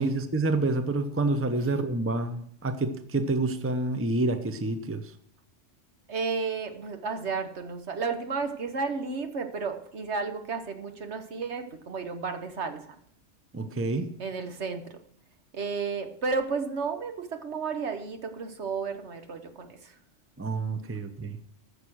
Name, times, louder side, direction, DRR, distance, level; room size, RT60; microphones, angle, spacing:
voice 1, 0.0-5.1 13.5-14.1 20.4-21.4, right 2 dB, 15° right, 9 dB, 0.6 m, -28 dB
voice 2, 6.1-12.8 14.2-14.8 15.5-19.9, right 4 dB, 65° right, 6 dB, 1.4 m, -32 dB
14.5 x 6.9 x 6.2 m, 0.65 s
omnidirectional pair, 1.2 m